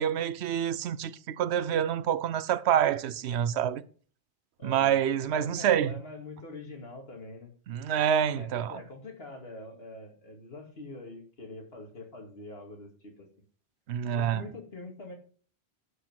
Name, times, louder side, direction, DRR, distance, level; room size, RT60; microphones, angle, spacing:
voice 1, 0.0-3.8 4.6-5.9 7.7-8.8 13.9-14.4, right 9 dB, 85° right, 0.9 m, -27 dB
voice 2, 4.6-5.0 5.3-7.5 8.3-13.3 14.1-15.1, left 2 dB, 70° left, 2.5 m, -44 dB
11.0 x 5.2 x 5.9 m
omnidirectional pair, 1.1 m